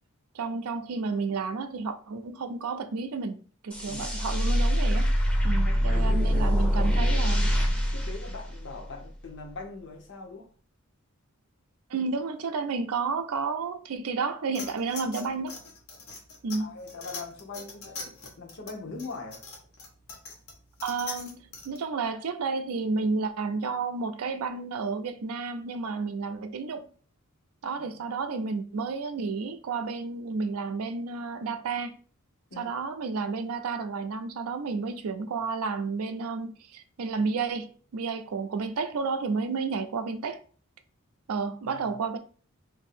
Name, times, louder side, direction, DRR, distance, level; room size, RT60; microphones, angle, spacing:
voice 1, 0.3-5.1 5.4-7.5 11.9-15.6 16.4-16.8 20.8-26.9 27.6-31.9 32.6-40.4 41.3-42.2, right 4 dB, 85° right, 0.5 m, -31 dB
sound 1, 3.7-9.0, equal, 5° left, 0.5 m, -24 dB
voice 2, 3.9-4.2 5.6-7.2 7.7-10.5 16.6-19.4 27.8-27.9 32.5-32.8 41.6-42.0, left 3 dB, 55° left, 0.7 m, -42 dB
sound 2, 14.5-21.8, left 4 dB, 85° left, 1.1 m, -42 dB
2.7 x 2.6 x 4.2 m
head